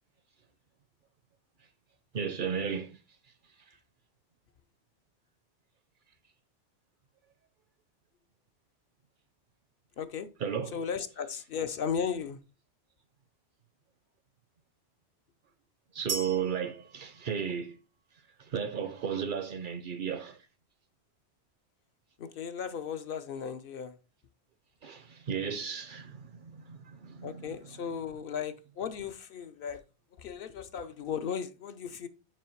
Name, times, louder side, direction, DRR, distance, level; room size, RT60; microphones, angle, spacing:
voice 1, 2.1-3.0 10.4-10.8 15.9-17.8 18.4-20.4 24.8-27.9, right 7 dB, 55° right, 0.7 m, -34 dB
voice 2, 10.0-10.3 10.7-12.4 22.2-23.9 27.2-29.8 30.2-32.1, left 7 dB, 65° left, 0.7 m, -36 dB
sound 1, 16.1-18.0, right 5 dB, 80° right, 0.9 m, -39 dB
6.2 x 4.4 x 4.5 m
omnidirectional pair, 1.1 m